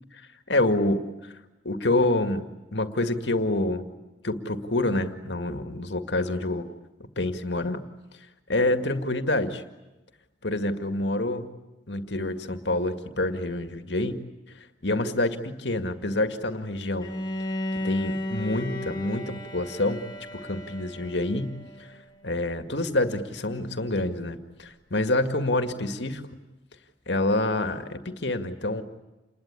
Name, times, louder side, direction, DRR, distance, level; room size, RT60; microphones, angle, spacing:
voice 1, 0.5-1.3 1.6-3.9 4.2-6.7 7.2-7.8 8.5-9.6 10.4-11.5 11.9-14.2 14.8-17.1 17.7-20.1 20.3-21.9 22.2-26.3 27.1-28.8, left 2 dB, 70° left, 7 dB, 2.1 m, -27 dB
Bowed string instrument, 17.0-22.0, left 1 dB, 25° left, 2.0 m, -34 dB
29.0 x 21.0 x 9.8 m, 1.1 s
head